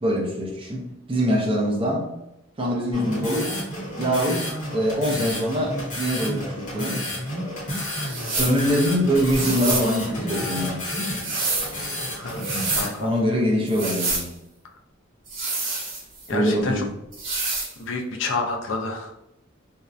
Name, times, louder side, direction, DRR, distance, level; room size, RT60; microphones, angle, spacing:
voice 1, 0.0-2.2 2.6-3.6 4.0-7.0 8.0-10.8 13.0-14.3 16.3-16.9, equal, 25° right, -1 dB, 0.4 m, -24 dB
sound 1, 2.9-12.9, left 1 dB, 40° left, 0.8 m, -31 dB
sound 2, 8.0-8.6 9.3-9.9 10.9-11.7 12.3-12.9 13.7-14.3 15.3-16.3 17.1-17.7, right 3 dB, 70° right, 0.9 m, -28 dB
voice 2, 12.2-13.1 16.3-16.8 17.8-19.1, left 3 dB, 65° left, 3 dB, 0.4 m, -29 dB
2.6 x 2.1 x 2.3 m, 0.87 s
head